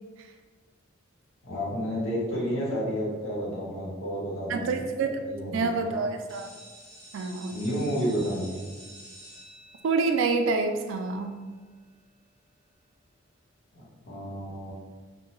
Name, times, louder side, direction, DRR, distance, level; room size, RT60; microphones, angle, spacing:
voice 1, 1.4-4.8 5.1-6.0 7.5-8.6 13.7-14.7, equal, 90° left, -6 dB, 1.0 m, -31 dB
voice 2, 4.5-5.3 5.5-6.5 7.1-7.6 9.8-11.3, right 4 dB, 70° right, 6 dB, 0.3 m, -27 dB
sound 1, 6.3-11.9, right 1 dB, 5° left, 1.1 m, -50 dB
2.6 x 2.2 x 3.1 m, 1.4 s
head